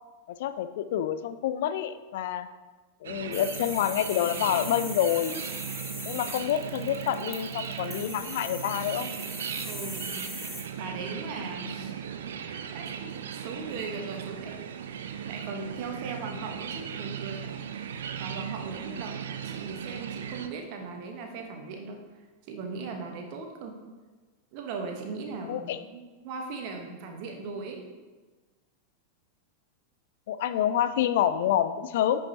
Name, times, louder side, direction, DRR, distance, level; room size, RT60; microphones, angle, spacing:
voice 1, 0.3-2.5 3.0-5.4 6.1-9.1 25.5-25.8 30.3-32.2, left 10 dB, 55° left, 12 dB, 0.3 m, -27 dB
sound 1, 3.0-20.5, right 8 dB, 60° right, 0.5 m, -37 dB
sound 2, 3.3-10.6, left 1 dB, 10° left, 1.4 m, -40 dB
voice 2, 9.6-10.1 10.8-11.9 12.7-19.1 19.4-23.8 24.5-27.9, right 4 dB, 45° right, 3 dB, 1.2 m, -39 dB
9.6 x 5.3 x 2.9 m, 1.3 s
figure-of-eight pair, 90°, 0 cm